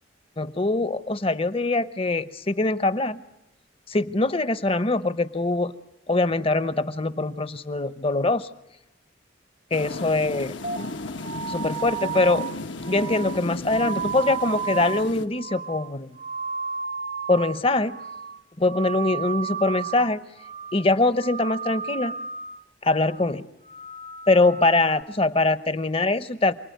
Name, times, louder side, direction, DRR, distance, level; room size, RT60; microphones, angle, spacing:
voice 1, 0.4-3.2 3.9-5.7 6.1-8.5 9.7-10.5 11.5-12.4 12.9-16.2 17.3-18.0 18.6-20.2 20.7-22.1 22.8-23.5 24.3-26.5, left 2 dB, 30° left, 14 dB, 0.9 m, -23 dB
sound 1, 9.7-15.3, left 2 dB, 75° left, 1.3 m, -35 dB
sound 2, 10.6-17.6 17.9-18.4 18.7-20.1 20.4-20.9 21.2-22.6 23.0-23.3 23.7-25.0, right 6 dB, 45° right, 0.9 m, -33 dB
28.5 x 20.0 x 9.4 m, 0.92 s
head